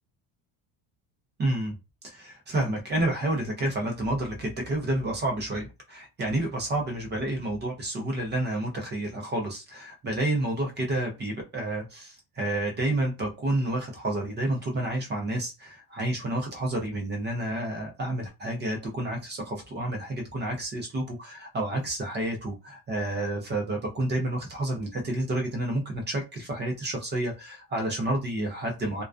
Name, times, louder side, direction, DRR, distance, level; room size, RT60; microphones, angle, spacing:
voice 1, 1.4-1.8 2.0-29.0, right 1 dB, 25° right, 0.4 m, -30 dB
2.4 x 2.2 x 2.3 m
cardioid pair, 155°, 50 cm